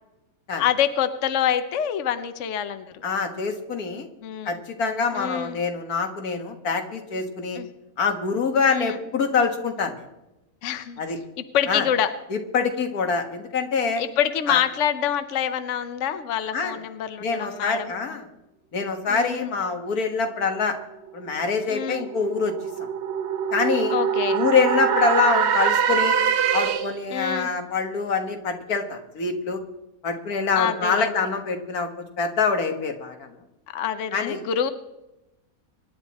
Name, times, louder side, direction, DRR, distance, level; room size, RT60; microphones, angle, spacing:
voice 1, 0.6-2.8 4.2-4.6 5.1-5.6 7.6-7.7 8.7-9.0 10.6-11.0 11.5-12.1 13.9-18.2 19.1-19.5 21.7-22.1 23.9-24.4 27.1-27.5 30.5-31.1 33.7-34.7, left 9 dB, 60° left, 10 dB, 1.1 m, -26 dB
voice 2, 3.0-4.1 4.5-7.6 8.0-10.1 11.0-11.2 11.7-11.9 12.3-14.0 14.5-14.6 16.5-16.8 17.2-18.3 18.7-20.8 21.1-22.5 22.8-22.9 23.5-24.0 24.3-26.2 26.5-29.6 30.0-31.9 32.2-33.3 34.1-34.4, left 5 dB, 85° left, 5 dB, 2.0 m, -25 dB
sound 1, 20.9-27.1, right 8 dB, 55° right, 0.9 m, -24 dB
24.5 x 10.5 x 4.2 m, 0.96 s
omnidirectional pair, 1.5 m